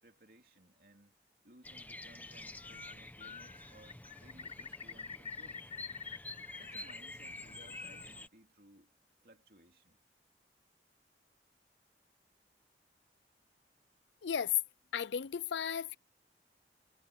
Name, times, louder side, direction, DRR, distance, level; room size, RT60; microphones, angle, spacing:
voice 1, 0.0-1.2 1.4-5.6 6.6-8.9 9.2-10.0, right 1 dB, 55° right, 3.8 m, -61 dB
Bird vocalization bird call bird song, 1.6-8.3, left 2 dB, 10° left, 1.0 m, -49 dB
Bird, 2.4-2.9 3.2-6.9 7.2-8.0, left 6 dB, 35° left, 3.9 m, -48 dB
voice 2, 14.2-14.6 14.9-16.0, left 8 dB, 85° left, 0.5 m, -34 dB
head